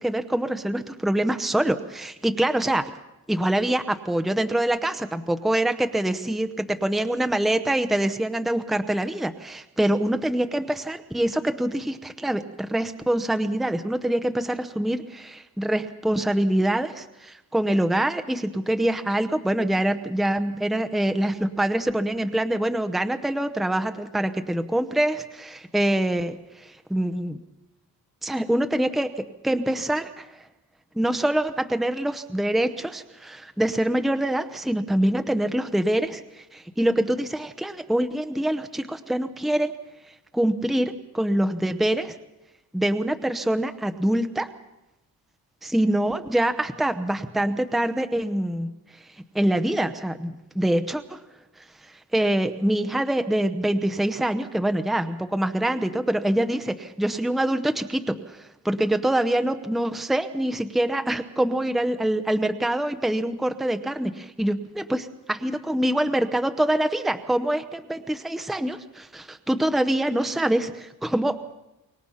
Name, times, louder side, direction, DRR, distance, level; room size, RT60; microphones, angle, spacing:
voice 1, 0.0-2.9 3.3-27.4 28.2-30.3 31.0-39.7 40.3-42.2 42.7-44.5 45.6-48.7 49.3-51.2 51.9-64.6 64.9-65.0 65.3-71.5, right 1 dB, ahead, 8 dB, 0.8 m, -25 dB
25.0 x 22.5 x 5.7 m, 0.96 s
wide cardioid pair, 150°, 37 cm